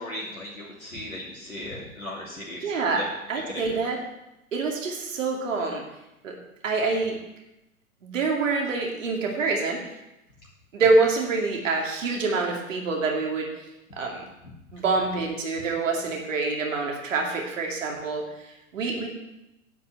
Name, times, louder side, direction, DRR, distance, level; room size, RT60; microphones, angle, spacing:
voice 1, 0.0-3.1 3.5-3.9, left 1 dB, 75° left, -5 dB, 2.8 m, -37 dB
voice 2, 2.6-3.0 3.3-4.0 4.5-5.8 6.2-6.4 6.6-7.2 8.0-9.8 10.7-13.5 14.0-14.2 14.7-18.2 18.7-19.1, right 3 dB, 65° right, 1 dB, 2.4 m, -26 dB
11.0 x 5.5 x 7.9 m, 0.92 s
figure-of-eight pair, 100°, 42 cm